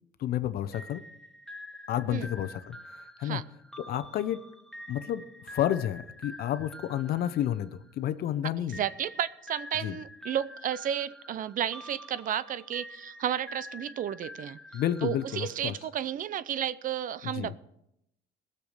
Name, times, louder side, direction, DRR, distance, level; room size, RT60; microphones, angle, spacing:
voice 1, 0.2-1.0 1.9-3.4 3.8-4.5 4.9-8.8 9.8-10.0 14.7-15.8 17.2-17.5, left 11 dB, 65° left, 14 dB, 0.8 m, -31 dB
sound 1, 0.7-8.2 8.7-16.0, left 1 dB, 5° left, 0.9 m, -47 dB
voice 2, 8.8-14.6 15.0-17.6, right 10 dB, 55° right, 17 dB, 0.6 m, -32 dB
18.0 x 6.9 x 6.5 m, 0.81 s
cardioid pair, 110°, 17 cm